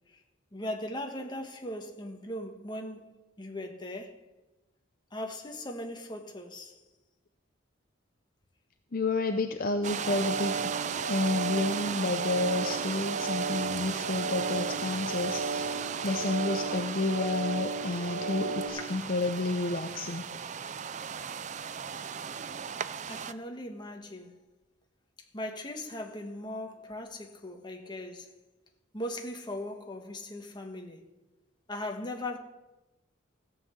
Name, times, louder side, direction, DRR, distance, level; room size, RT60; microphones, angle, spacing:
voice 1, 0.5-4.2 5.1-6.8 18.8-19.0 23.1-24.4 25.3-28.3 28.9-31.0 31.7-32.4, left 1 dB, 20° left, 1.4 m, -39 dB
voice 2, 8.9-10.7 11.1-15.7 16.0-20.2, left 2 dB, 45° left, 0.6 m, -30 dB
sound 1, 9.8-18.7, right 3 dB, 65° left, 1.5 m, -35 dB
sound 2, 9.8-23.3, right 7 dB, 35° right, 0.4 m, -36 dB
15.0 x 5.7 x 8.2 m
head